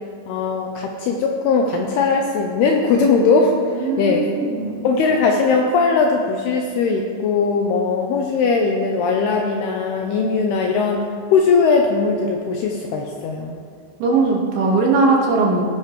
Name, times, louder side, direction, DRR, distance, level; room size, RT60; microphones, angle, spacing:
voice 1, 0.3-4.3 4.8-13.6, left 4 dB, 80° left, 2 dB, 2.3 m, -19 dB
voice 2, 3.6-4.8 14.0-15.6, right 3 dB, 75° right, -1 dB, 3.9 m, -19 dB
17.5 x 9.0 x 3.2 m, 2.4 s
omnidirectional pair, 5.3 m